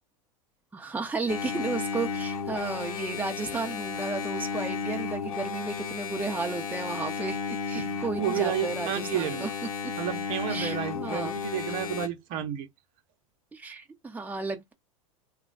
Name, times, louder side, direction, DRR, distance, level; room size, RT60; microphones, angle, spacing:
voice 1, 0.7-9.5 10.5-11.4 13.5-14.7, right 3 dB, 10° right, 0.9 m, -33 dB
Engine, 1.3-12.1, left 6 dB, 85° left, 0.9 m, -33 dB
voice 2, 7.7-9.5 10.0-12.7, right 10 dB, 50° right, 1.0 m, -31 dB
3.0 x 2.4 x 3.9 m
hypercardioid pair, 105°, 18 cm